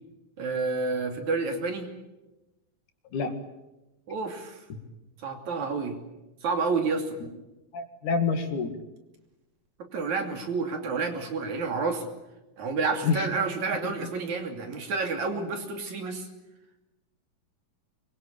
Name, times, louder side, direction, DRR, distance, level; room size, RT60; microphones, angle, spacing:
voice 1, 0.4-1.9 4.1-4.6 5.2-6.0 6.4-7.2 9.9-12.1 12.6-16.3, right 4 dB, 60° right, 4 dB, 4.1 m, -29 dB
voice 2, 7.7-8.7 13.0-13.3 13.8-13.9, left 5 dB, 70° left, 7 dB, 3.5 m, -27 dB
24.5 x 22.5 x 8.8 m, 1.0 s
omnidirectional pair, 3.7 m